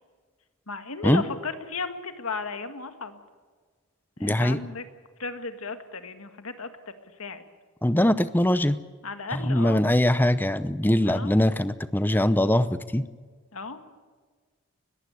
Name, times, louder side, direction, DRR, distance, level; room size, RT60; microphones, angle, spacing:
voice 1, 0.7-3.2 4.2-4.9 5.2-6.7 7.2-7.4 9.0-9.8 11.1-11.4 13.5-13.8, left 4 dB, 80° left, 8 dB, 1.9 m, -34 dB
voice 2, 4.2-4.6 7.8-8.8 9.3-13.0, left 1 dB, 10° left, 14 dB, 0.6 m, -22 dB
21.0 x 15.5 x 9.8 m, 1.5 s
head